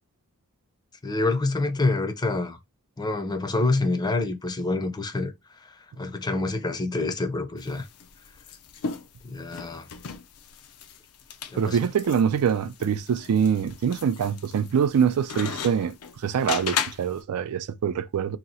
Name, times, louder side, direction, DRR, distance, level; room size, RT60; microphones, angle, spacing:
voice 1, 1.0-2.6 3.0-5.3 5.6-7.9 9.2-9.9 11.5-11.8, left 2 dB, 20° left, 0.5 m, -27 dB
sound 1, 7.6-17.2, left 6 dB, 80° left, 0.5 m, -36 dB
voice 2, 11.5-18.4, right 7 dB, 80° right, 0.4 m, -24 dB
2.8 x 2.7 x 4.1 m
head